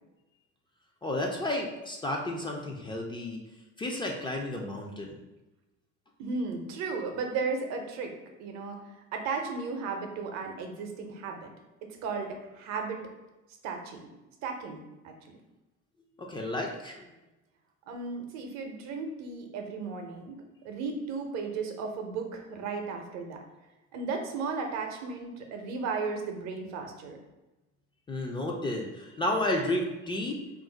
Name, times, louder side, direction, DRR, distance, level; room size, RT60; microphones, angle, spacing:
voice 1, 1.0-3.5 3.8-5.1 16.2-17.1 28.1-30.4, left 1 dB, 15° left, 0 dB, 0.3 m, -32 dB
voice 2, 6.2-8.1 8.4-8.8 9.1-11.5 12.0-13.0 13.6-14.1 14.4-15.3 17.9-20.3 20.6-23.4 23.9-27.2, right 4 dB, 65° right, 4 dB, 0.6 m, -35 dB
2.4 x 2.0 x 3.8 m, 1.1 s
supercardioid pair, 105°, 29 cm